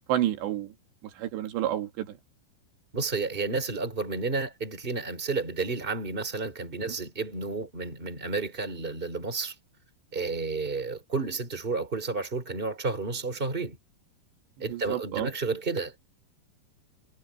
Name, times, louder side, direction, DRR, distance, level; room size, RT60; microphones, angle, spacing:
voice 1, 0.1-0.7 1.2-2.1 14.7-15.3, right 12 dB, 90° right, 4.3 m, -29 dB
voice 2, 2.9-9.6 10.1-13.8 14.6-16.1, right 4 dB, 15° right, 3.4 m, -31 dB
omnidirectional pair, 4.9 m